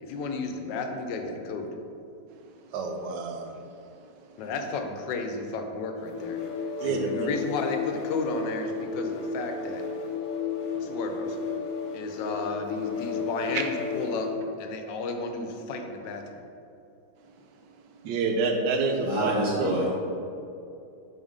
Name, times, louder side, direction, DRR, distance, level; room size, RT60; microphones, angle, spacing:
voice 1, 0.0-1.7 4.4-6.4 6.8-9.8 10.7-11.4 11.9-14.3 14.6-16.4, left 3 dB, 85° left, 5 dB, 1.3 m, -33 dB
voice 2, 2.7-3.5 4.3-4.4 6.8-7.3 13.5-13.6 18.0-19.3 19.6-19.8, right 4 dB, 85° right, 3 dB, 1.3 m, -28 dB
sound 1, 6.0-14.4, left 5 dB, 65° left, 0.7 m, -33 dB
voice 3, 19.0-19.9, right 1 dB, 20° left, -8 dB, 0.8 m, -27 dB
6.4 x 3.1 x 5.1 m, 2.7 s
omnidirectional pair, 1.9 m